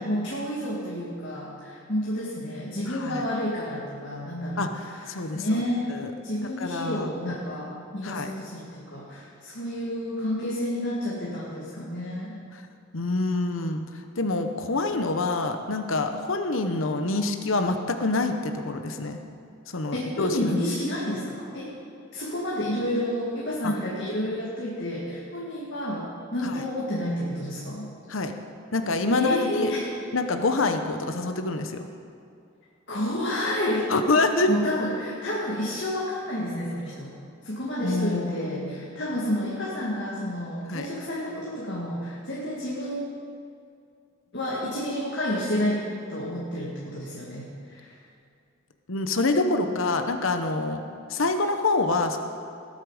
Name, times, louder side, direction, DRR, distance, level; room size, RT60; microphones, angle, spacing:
voice 1, 0.0-5.9 6.2-12.4 19.9-21.7 22.1-27.9 29.1-29.9 32.9-33.9 34.5-37.1 37.4-43.1 44.3-47.9, left 1 dB, 55° left, -5 dB, 2.0 m, -30 dB
voice 2, 2.9-3.2 4.6-4.7 5.1-5.6 5.9-6.1 6.6-7.1 8.0-8.3 12.5-12.6 12.9-13.8 14.2-19.2 19.7-20.4 23.6-23.7 26.4-26.5 28.1-28.3 28.7-29.7 30.1-31.9 33.9-34.5 37.8-38.5 40.7-40.9 48.9-50.8 51.1-52.2, left 3 dB, 75° left, 6 dB, 0.9 m, -26 dB
19.0 x 8.7 x 4.9 m, 2.4 s
head